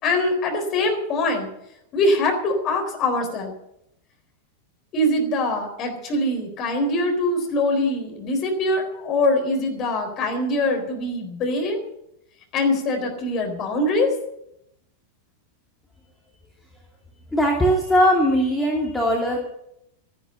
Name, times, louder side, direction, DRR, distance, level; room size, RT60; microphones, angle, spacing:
voice 1, 0.0-1.5 1.9-3.5 4.9-11.8 12.5-14.1, left 2 dB, 35° left, 4 dB, 4.1 m, -23 dB
voice 2, 17.3-19.5, equal, 5° left, -1 dB, 2.5 m, -20 dB
13.5 x 12.0 x 7.0 m, 0.79 s
figure-of-eight pair, 90°, 0 cm